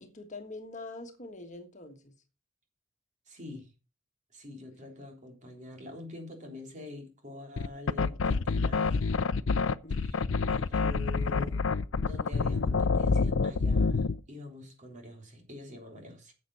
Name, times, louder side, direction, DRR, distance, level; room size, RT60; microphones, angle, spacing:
voice 1, 0.0-2.1 9.8-10.3, left 2 dB, 40° left, 1.5 m, -44 dB
voice 2, 3.3-3.7 4.3-9.0 9.9-11.6 12.0-16.3, left 2 dB, 40° right, 3.5 m, -45 dB
sound 1, 7.6-14.2, left 4 dB, 75° left, 0.5 m, -27 dB
10.0 x 7.6 x 5.5 m
head